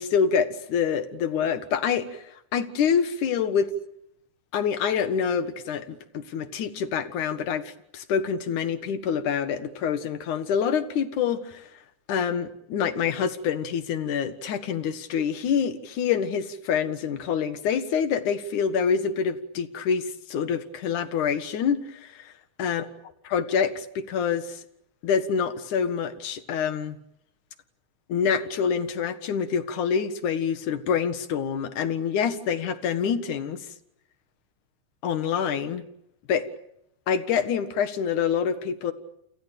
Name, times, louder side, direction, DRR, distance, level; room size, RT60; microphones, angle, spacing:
voice 1, 0.0-2.2 2.5-3.7 4.5-11.7 12.1-22.3 22.6-22.9 23.3-24.6 25.0-27.0 28.1-33.7 35.0-35.9 36.3-36.5 37.1-38.9, left 7 dB, 85° left, 11 dB, 3.1 m, -26 dB
30.0 x 27.5 x 6.8 m, 0.76 s
omnidirectional pair, 3.4 m